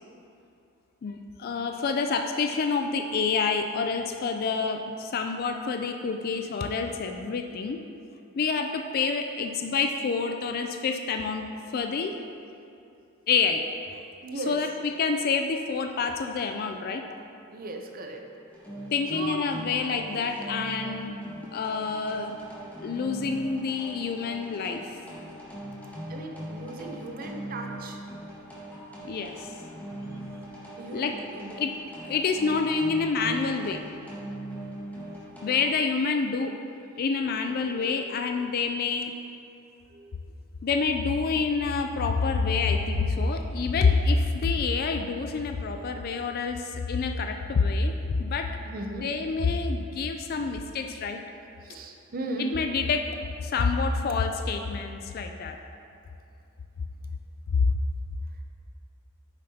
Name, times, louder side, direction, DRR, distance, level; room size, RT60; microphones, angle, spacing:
voice 1, 1.0-7.8 8.4-11.5 11.7-12.1 13.3-13.6 14.5-17.0 18.9-21.2 21.5-22.3 22.8-25.0 29.0-29.5 30.9-31.1 31.6-31.7 32.0-33.8 35.4-36.5 37.0-39.1 40.6-47.9 48.2-48.5 49.0-51.2 52.5-53.0 53.4-55.6 57.5-57.7, left 4 dB, 45° left, 5 dB, 0.3 m, -27 dB
voice 2, 14.2-14.6 17.5-18.2 19.1-19.4 26.1-29.1 30.8-31.6 34.0-35.5 37.0-37.1 37.6-38.1 38.3-38.5 39.9-40.2 42.6-43.3 45.8-46.2 48.6-49.1 51.6-52.5, right 2 dB, 45° right, 3 dB, 0.7 m, -39 dB
sound 1, 18.5-35.7, right 1 dB, 10° left, 1.7 m, -40 dB
9.0 x 6.6 x 2.8 m, 2.6 s
head